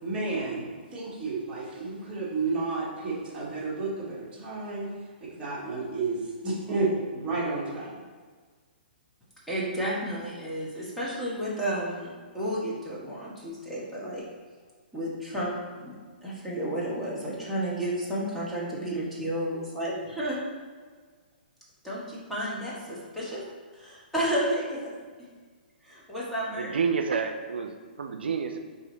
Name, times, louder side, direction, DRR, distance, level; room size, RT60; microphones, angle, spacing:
voice 1, 0.0-4.9 5.2-8.0, right 3 dB, 20° right, -7 dB, 1.5 m, -31 dB
voice 2, 9.5-14.2 14.9-20.4 21.8-23.4 23.7-25.0 25.8-26.7, right 1 dB, ahead, -8 dB, 1.2 m, -32 dB
voice 3, 26.6-28.6, right 5 dB, 80° right, 6 dB, 0.4 m, -29 dB
4.9 x 2.9 x 3.8 m, 1.5 s
hypercardioid pair, 135°, 6 cm